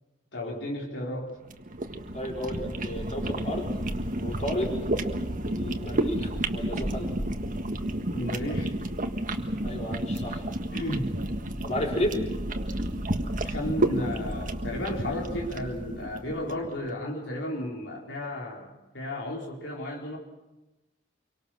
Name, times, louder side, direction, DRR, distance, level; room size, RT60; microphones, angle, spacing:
voice 1, 0.3-1.3 8.1-8.7 10.7-11.2 13.4-20.2, left 1 dB, 75° left, -1 dB, 4.1 m, -34 dB
sound 1, 1.4-16.7, right 1 dB, 45° right, 1.7 m, -31 dB
voice 2, 2.1-3.7 4.2-4.8 5.5-7.1 9.6-10.5 11.6-12.2, left 1 dB, 40° left, 0 dB, 5.0 m, -32 dB
27.0 x 24.0 x 6.4 m, 1.0 s
head